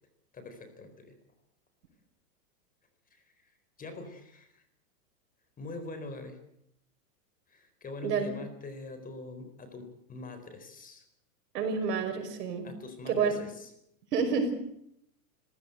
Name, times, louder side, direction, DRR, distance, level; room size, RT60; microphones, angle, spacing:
voice 1, 0.3-1.2 3.1-3.2 3.8-4.6 5.6-6.4 7.5-11.0 12.6-13.7, left 2 dB, 15° left, 8 dB, 4.2 m, -43 dB
voice 2, 8.0-8.3 11.5-12.7 13.1-13.3 14.1-14.5, right 5 dB, 75° right, 6 dB, 5.6 m, -29 dB
26.0 x 16.0 x 7.9 m, 0.74 s
supercardioid pair, 140°, 47 cm